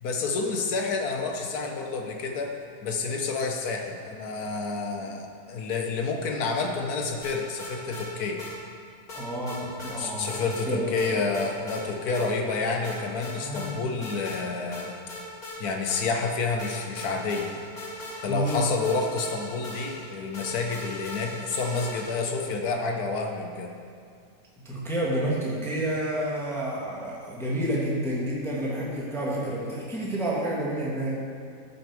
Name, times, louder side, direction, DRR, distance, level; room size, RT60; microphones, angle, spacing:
voice 1, 0.0-2.6 2.8-8.4 9.9-14.9 15.6-17.6 18.2-23.7, left 4 dB, 65° left, 3 dB, 1.3 m, -29 dB
sound 1, 7.2-8.1 8.4-8.5 9.1-10.0 10.3-10.7 11.0-11.8 12.1-12.3 12.8-13.7 14.0-14.4 14.7-16.3 16.6-22.4, left 1 dB, 30° left, 1.8 m, -40 dB
voice 2, 9.1-10.9 13.4-13.8 18.3-18.7 24.6-31.2, right 1 dB, ahead, -5 dB, 1.4 m, -29 dB
14.0 x 5.2 x 4.6 m, 2.3 s
omnidirectional pair, 1.9 m